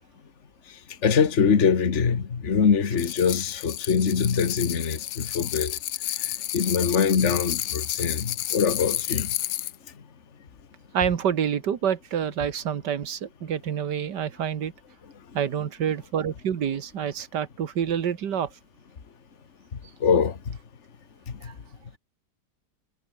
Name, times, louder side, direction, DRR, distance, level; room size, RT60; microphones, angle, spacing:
voice 1, 1.0-5.8 6.2-6.3 6.5-9.3 20.0-20.4, left 6 dB, 45° left, 1.8 m, -23 dB
sound 1, 3.0-9.8, left 13 dB, 70° left, 1.3 m, -31 dB
voice 2, 10.9-14.7 15.3-18.5 21.4-21.5, right 8 dB, 80° right, 2.1 m, -27 dB
omnidirectional pair, 1.8 m